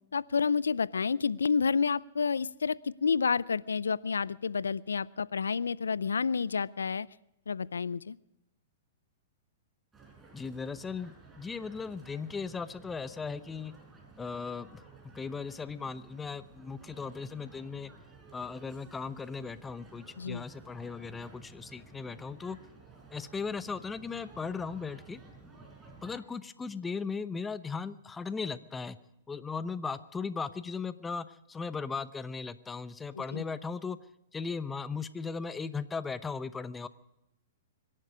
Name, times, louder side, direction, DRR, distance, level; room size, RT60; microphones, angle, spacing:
voice 1, 0.1-7.1 7.5-8.2 20.2-20.5 33.1-33.5, left 5 dB, 85° left, 21 dB, 0.5 m, -29 dB
sound 1, 9.9-26.2, right 4 dB, 15° right, 4.4 m, -54 dB
voice 2, 10.3-13.7 14.2-14.8 15.1-17.9 18.3-22.6 23.1-25.2 26.0-29.0 29.3-34.0 34.3-36.9, left 5 dB, 15° left, 14 dB, 0.9 m, -37 dB
25.5 x 11.0 x 5.0 m, 0.86 s
hypercardioid pair, 115°, 0 cm